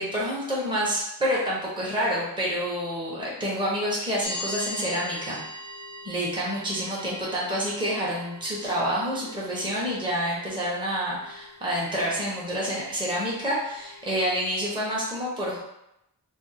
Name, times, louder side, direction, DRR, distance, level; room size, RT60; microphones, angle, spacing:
voice 1, 0.0-5.4 6.0-15.6, equal, 10° right, -6 dB, 0.8 m, -28 dB
sound 1, 4.2-14.2, left 1 dB, 15° left, 0.5 m, -42 dB
2.5 x 2.1 x 3.9 m, 0.84 s
wide cardioid pair, 65°, 41 cm